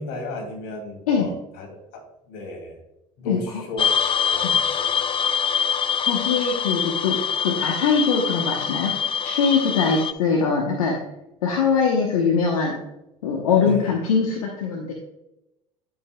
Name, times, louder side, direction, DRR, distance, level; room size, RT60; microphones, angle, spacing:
voice 1, 0.0-2.8 3.2-5.3 13.6-13.9, left 2 dB, 70° left, 1 dB, 2.6 m, -35 dB
sound 1, 3.8-10.1, left 7 dB, 30° left, 0.5 m, -24 dB
voice 2, 6.0-11.0 11.4-12.7 13.2-14.9, left 5 dB, 85° left, 0 dB, 1.1 m, -22 dB
12.0 x 5.5 x 2.3 m, 0.90 s
hypercardioid pair, 70°, 18 cm